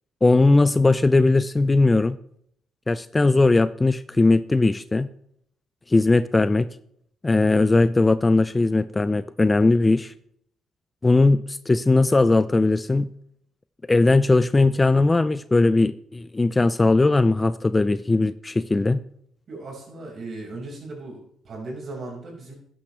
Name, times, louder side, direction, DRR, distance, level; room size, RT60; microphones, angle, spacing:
voice 1, 0.2-2.2 2.9-5.1 5.9-6.7 7.2-10.1 11.0-13.1 13.9-19.0, left 2 dB, 20° left, 14 dB, 0.4 m, -19 dB
voice 2, 19.5-22.5, right 2 dB, 50° right, -1 dB, 5.4 m, -37 dB
12.5 x 10.0 x 3.4 m, 0.68 s
cardioid pair, 90°, 0 cm